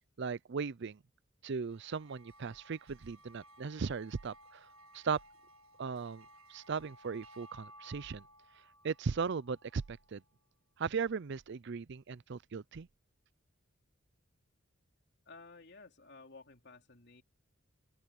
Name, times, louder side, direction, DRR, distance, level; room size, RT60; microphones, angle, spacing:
voice 1, 0.2-1.0 1.4-4.7 4.9-5.2 5.8-8.2 8.8-10.2 10.8-12.9, right 5 dB, 60° right, 0.5 m, -37 dB
sound 1, 1.7-10.3, equal, 80° right, 1.5 m, -59 dB
voice 2, 15.2-17.2, left 3 dB, 55° left, 3.3 m, -54 dB
open air
head